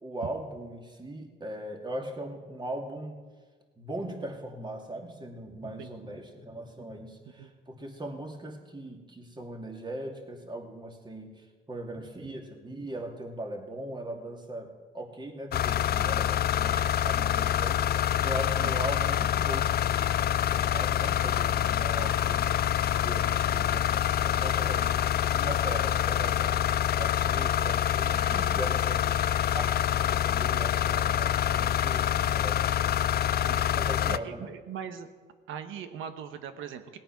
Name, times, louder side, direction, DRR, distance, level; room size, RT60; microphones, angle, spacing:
voice 1, 0.0-3.2 3.8-20.1 20.4-26.6 26.9-33.0 33.7-34.5, right 1 dB, 20° right, 2 dB, 2.4 m, -40 dB
sound 1, 15.5-34.2, left 10 dB, 50° left, 0.4 m, -26 dB
voice 2, 34.1-35.1 35.5-37.0, right 8 dB, 85° right, 9 dB, 1.1 m, -40 dB
18.5 x 8.9 x 6.0 m, 1.4 s
cardioid pair, 90°, 20 cm